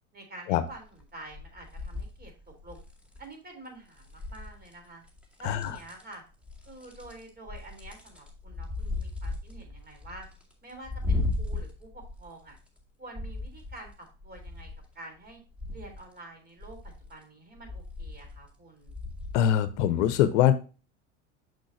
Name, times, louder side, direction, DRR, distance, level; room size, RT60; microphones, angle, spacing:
voice 1, 0.1-2.8 3.2-5.0 5.4-6.2 6.7-10.3 10.6-12.6 13.0-14.7 15.0-15.4 15.7-18.9, right 2 dB, 25° right, 3 dB, 3.4 m, -47 dB
sound 1, 0.7-1.0 1.3-3.3 4.0-4.7 5.1-6.1 6.5-12.8 13.2-14.9 15.3-16.0 16.6-17.1 17.6-18.5 18.9-19.4 19.9-20.0, left 3 dB, 5° right, 2.1 m, -36 dB
voice 2, 19.3-20.5, left 10 dB, 65° left, 12 dB, 0.8 m, -23 dB
6.7 x 6.2 x 2.6 m, 0.33 s
hypercardioid pair, 85°, 38 cm